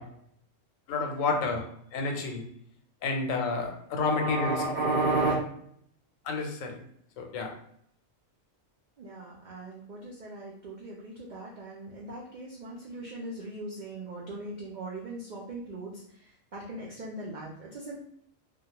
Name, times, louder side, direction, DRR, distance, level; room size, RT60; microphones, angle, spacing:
voice 1, 0.9-2.4 3.0-4.6 6.2-6.8 7.2-7.5, left 4 dB, 90° left, 3 dB, 1.0 m, -30 dB
voice 2, 4.1-5.3 9.0-18.0, right 2 dB, 85° right, -3 dB, 0.4 m, -35 dB
2.3 x 2.1 x 2.8 m, 0.67 s
omnidirectional pair, 1.3 m